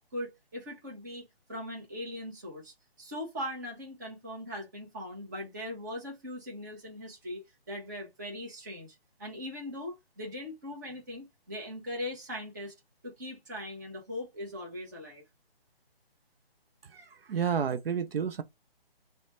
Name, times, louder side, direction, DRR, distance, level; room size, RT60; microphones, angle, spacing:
voice 1, 0.1-7.4 7.7-12.7 13.0-15.2, left 1 dB, 20° right, 0.7 m, -40 dB
voice 2, 16.8-18.4, right 7 dB, 70° right, 0.5 m, -31 dB
3.1 x 2.1 x 4.2 m
hypercardioid pair, 170°, 31 cm